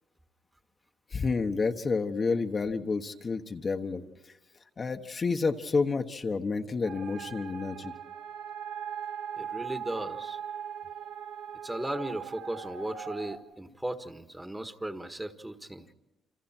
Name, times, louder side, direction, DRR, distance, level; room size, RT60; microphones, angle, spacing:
voice 1, 1.1-4.0 4.3-4.4 4.8-7.9, left 4 dB, 35° left, 4 dB, 1.2 m, -29 dB
sound 1, 6.8-13.4, right 8 dB, 85° right, 3.5 m, -40 dB
voice 2, 9.3-10.4 11.6-15.9, right 1 dB, 10° right, 7 dB, 1.6 m, -36 dB
29.0 x 26.5 x 4.5 m, 1.0 s
cardioid pair, 90°, 0 cm